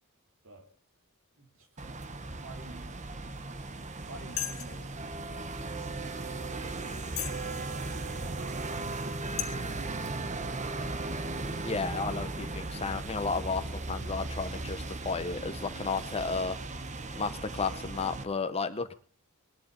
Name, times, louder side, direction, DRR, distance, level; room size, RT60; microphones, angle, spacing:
voice 1, 1.4-1.9 2.3-3.2 4.1-10.4, right 2 dB, 65° right, 5 dB, 2.8 m, -53 dB
sound 1, 1.8-18.2, right 2 dB, 35° right, 1.1 m, -37 dB
sound 2, 4.4-4.8 5.5-5.6 6.2-6.3 7.1-7.5 8.0-8.1 8.8-9.0 9.4-9.5, left 12 dB, 70° left, 2.4 m, -34 dB
voice 2, 11.6-16.6 17.1-18.9, left 4 dB, 30° left, 8 dB, 0.9 m, -33 dB
19.0 x 11.5 x 5.1 m, 0.43 s
head